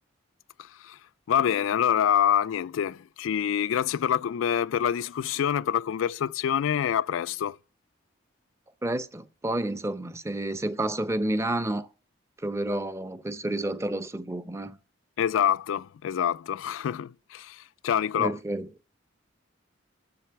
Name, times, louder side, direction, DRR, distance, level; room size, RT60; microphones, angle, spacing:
voice 1, 0.6-1.0 1.3-7.6 15.2-18.4, left 9 dB, 85° left, 0.3 m, -26 dB
voice 2, 8.8-11.9 12.4-14.8 18.2-18.7, right 1 dB, 15° right, 0.6 m, -30 dB
7.7 x 6.7 x 5.8 m
head